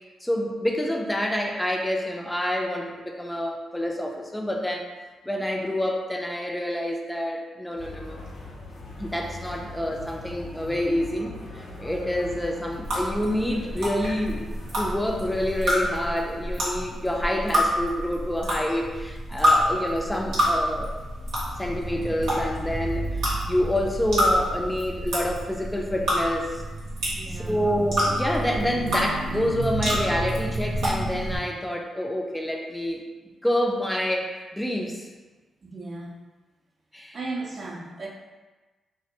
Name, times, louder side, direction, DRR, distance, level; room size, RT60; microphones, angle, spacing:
voice 1, 0.2-4.9 5.2-8.2 9.0-20.9 21.6-26.6 27.3-33.0 33.4-35.1 36.9-37.2, left 1 dB, 10° left, 1 dB, 0.4 m, -27 dB
sound 1, 7.8-15.7, left 2 dB, 65° left, 0.6 m, -40 dB
sound 2, 12.8-31.4, equal, 90° right, 0.8 m, -28 dB
voice 2, 27.1-27.6 35.6-36.2 37.1-38.1, right 3 dB, 50° right, -1 dB, 0.5 m, -36 dB
2.4 x 2.0 x 2.8 m, 1.2 s
cardioid pair, 65°, 0 cm